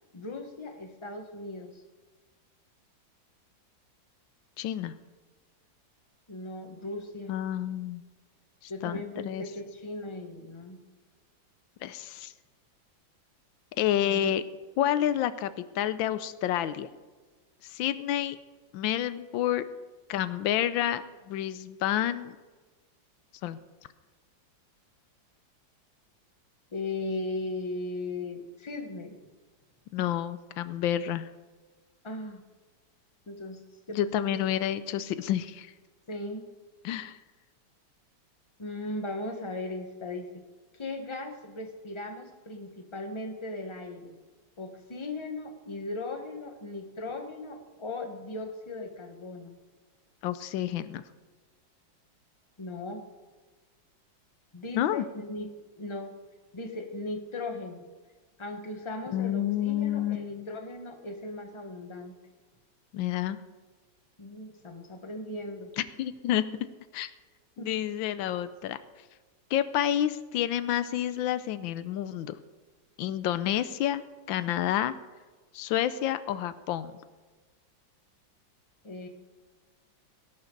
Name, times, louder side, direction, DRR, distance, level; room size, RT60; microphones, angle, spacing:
voice 1, 0.1-1.8 6.3-7.3 8.7-10.8 26.7-29.2 32.0-32.4 33.3-33.6 33.9-34.1 36.1-36.5 38.6-40.4 40.7-44.2 44.6-49.6 52.6-53.0 54.5-55.5 55.8-56.1 56.5-57.9 58.4-62.2 64.2-65.7 67.6-67.7 78.8-79.1, left 2 dB, 15° left, 5 dB, 1.2 m, -38 dB
voice 2, 4.6-4.9 7.3-8.0 8.6-9.4 11.8-12.3 13.8-14.4 14.8-16.9 17.7-18.4 18.7-19.6 20.1-22.4 23.4-23.6 29.9-31.3 33.9-35.7 36.8-37.2 50.2-51.0 54.7-55.0 59.1-60.5 62.9-63.4 65.8-66.5 66.9-67.1 67.6-68.8 69.5-72.4 73.0-74.0 74.3-75.0 75.5-76.9, left 11 dB, 90° left, 14 dB, 1.4 m, -29 dB
18.0 x 11.0 x 3.9 m, 1.3 s
omnidirectional pair, 2.1 m